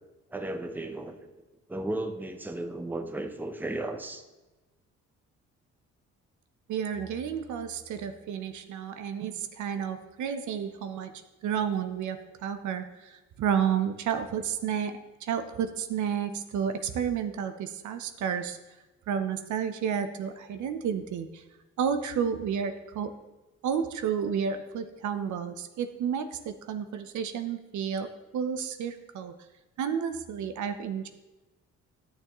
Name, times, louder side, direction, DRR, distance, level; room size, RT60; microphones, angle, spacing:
voice 1, 0.3-1.3 1.7-4.2, right 2 dB, 5° right, 6 dB, 0.8 m, -34 dB
voice 2, 6.7-18.6 19.1-21.4 21.8-23.1 23.6-29.3 29.8-31.1, right 7 dB, 75° right, 8 dB, 0.8 m, -31 dB
13.5 x 6.6 x 3.0 m, 1.1 s
cardioid pair, 90°, 30 cm